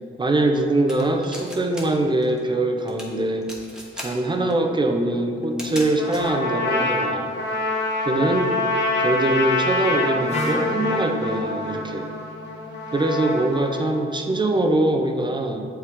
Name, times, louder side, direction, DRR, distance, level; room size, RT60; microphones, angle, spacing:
voice 1, 0.2-3.5 3.9-7.3 8.0-8.5 9.0-12.1 12.9-15.7, right 2 dB, 20° right, 4 dB, 0.7 m, -23 dB
sound 1, 0.9-1.8 2.1-2.4 2.8-3.1 3.4-4.1 4.5-4.6 5.4-6.3, equal, 5° right, 1.2 m, -36 dB
Trumpet, 6.0-14.0, left 2 dB, 55° left, 1.2 m, -26 dB
Wind instrument woodwind instrument, 10.3-14.2, left 1 dB, 30° left, 1.2 m, -34 dB
8.4 x 3.4 x 3.6 m, 2.2 s
cardioid pair, 70°, 21 cm